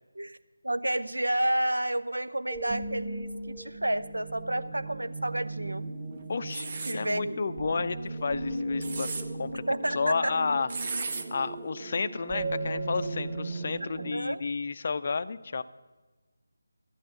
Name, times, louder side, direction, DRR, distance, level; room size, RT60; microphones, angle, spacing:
voice 1, 0.6-5.8 6.9-7.8 9.7-10.4 13.8-14.4, right 1 dB, 80° right, 11 dB, 0.7 m, -30 dB
sound 1, 2.5-14.1, right 2 dB, 15° right, 1.2 m, -37 dB
voice 2, 6.3-9.6 9.9-10.7 11.3-15.6, left 4 dB, 40° left, 13 dB, 0.5 m, -31 dB
sound 2, 6.5-7.0 8.6-9.2 10.7-11.2, right 4 dB, 40° right, 0.8 m, -34 dB
13.0 x 8.7 x 6.5 m, 1.3 s
figure-of-eight pair, 160°, 0 cm